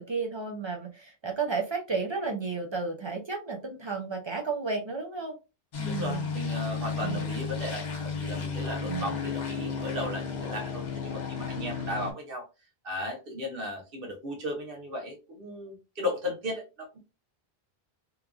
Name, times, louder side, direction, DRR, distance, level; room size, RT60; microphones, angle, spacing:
voice 1, 0.0-5.3 5.8-6.2 7.0-7.2 8.8-9.2, right 4 dB, 45° right, 2 dB, 0.3 m, -32 dB
sound 1, 5.7-12.1, left 5 dB, 50° left, 0.7 m, -33 dB
voice 2, 5.8-12.4 12.8-17.0, left 1 dB, 60° right, 1 dB, 1.0 m, -36 dB
3.0 x 2.4 x 2.2 m, 0.28 s
omnidirectional pair, 1.1 m